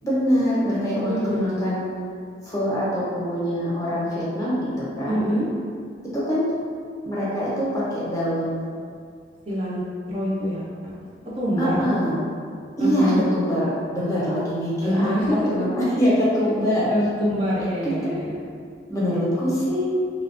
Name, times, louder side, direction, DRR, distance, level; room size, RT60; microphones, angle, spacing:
voice 1, 0.0-1.9 2.4-5.2 6.1-6.4 7.0-8.7 11.6-12.2 12.8-15.2 15.5-16.9 17.6-18.1 18.9-19.8, equal, 15° left, -9 dB, 0.6 m, -24 dB
voice 2, 1.1-1.7 5.1-5.5 9.5-10.9 11.4-11.8 12.8-13.2 14.8-15.5 16.9-18.3, equal, 30° right, -7 dB, 0.4 m, -25 dB
2.7 x 2.1 x 2.4 m, 2.2 s
head